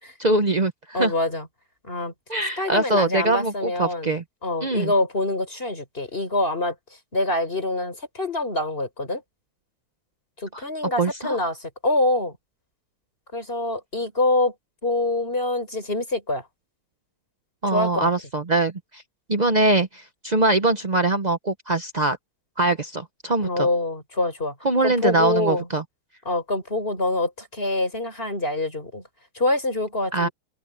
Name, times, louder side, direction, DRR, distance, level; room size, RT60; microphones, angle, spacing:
voice 1, 0.2-1.1 2.3-4.2 4.6-4.9 10.5-10.6 11.0-11.4 17.6-19.0 19.3-22.2 22.6-23.7 24.6-25.8 30.1-30.3, right 2 dB, 90° right, 0.3 m, -22 dB
voice 2, 0.9-1.5 1.8-2.1 2.6-4.1 4.4-6.7 7.1-9.2 10.4-12.4 13.3-14.5 14.8-16.5 17.7-18.1 23.4-24.5 24.8-25.7 26.3-29.0 29.4-30.3, left 2 dB, 25° left, 5.4 m, -25 dB
open air
omnidirectional pair, 2.4 m